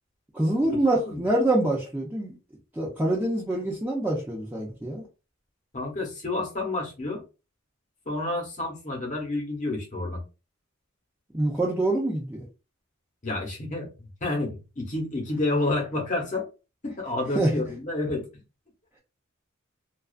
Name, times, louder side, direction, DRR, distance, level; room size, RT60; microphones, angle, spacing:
voice 1, 0.3-2.3 2.8-5.0 11.3-12.4 17.3-17.5, right 1 dB, 10° right, 0.5 m, -25 dB
voice 2, 5.7-7.2 8.1-10.2 13.2-16.4 16.8-18.2, left 2 dB, 35° left, 0.9 m, -29 dB
2.4 x 2.3 x 2.3 m
head